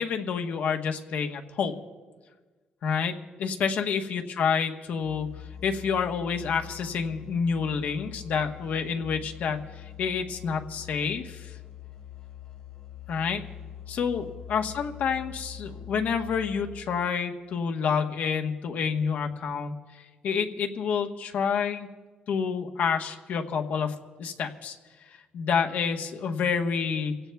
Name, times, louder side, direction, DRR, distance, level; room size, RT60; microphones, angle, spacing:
voice 1, 0.0-1.7 2.8-5.3 5.6-11.6 13.1-13.4 13.9-21.9 22.3-24.8 25.3-27.2, left 6 dB, 65° left, 4 dB, 1.1 m, -28 dB
Musical instrument, 5.0-17.0, left 9 dB, 30° left, 2.1 m, -44 dB
27.0 x 17.0 x 2.3 m, 1.4 s
cardioid pair, 150°, 3 cm